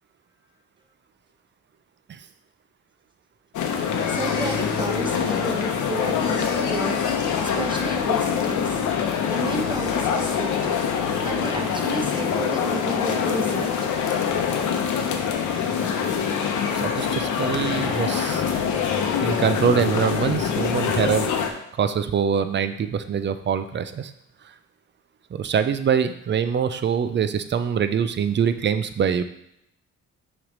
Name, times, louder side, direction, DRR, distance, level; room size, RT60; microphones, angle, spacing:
sound 1, 3.5-21.5, left 7 dB, 75° left, 0.8 m, -24 dB
voice 1, 3.8-10.8 11.2-13.9, right 2 dB, 15° right, 3 dB, 1.0 m, -33 dB
voice 2, 16.7-18.7 19.2-21.3 21.8-24.1 25.3-29.2, right 7 dB, 40° right, 11 dB, 0.5 m, -24 dB
6.0 x 3.2 x 5.1 m, 0.77 s
cardioid pair, 90°, 30 cm